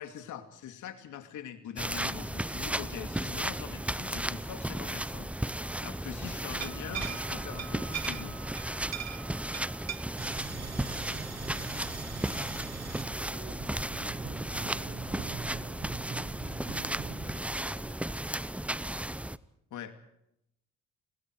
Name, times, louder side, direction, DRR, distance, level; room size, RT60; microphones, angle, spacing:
voice 1, 0.0-8.4 19.7-20.0, left 9 dB, 80° left, 2.5 m, -43 dB
sound 1, 1.8-19.4, right 1 dB, 5° right, 0.8 m, -35 dB
sound 2, 6.5-17.4, right 9 dB, 60° right, 1.3 m, -43 dB
voice 2, 9.0-9.6 10.3-16.0 16.3-18.2, right 4 dB, 45° right, 5.6 m, -53 dB
30.0 x 21.0 x 4.8 m
cardioid pair, 90°, 30 cm